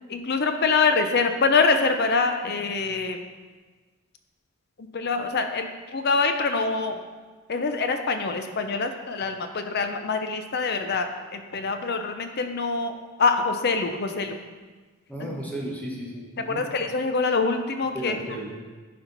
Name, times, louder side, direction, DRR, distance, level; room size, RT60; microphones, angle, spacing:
voice 1, 0.0-3.2 4.8-7.0 7.5-14.4 15.2-15.3 16.5-18.2, left 4 dB, 45° left, 7 dB, 0.6 m, -25 dB
voice 2, 15.1-16.6 17.9-18.6, equal, 5° left, -3 dB, 1.1 m, -34 dB
11.0 x 4.3 x 4.0 m, 1.4 s
head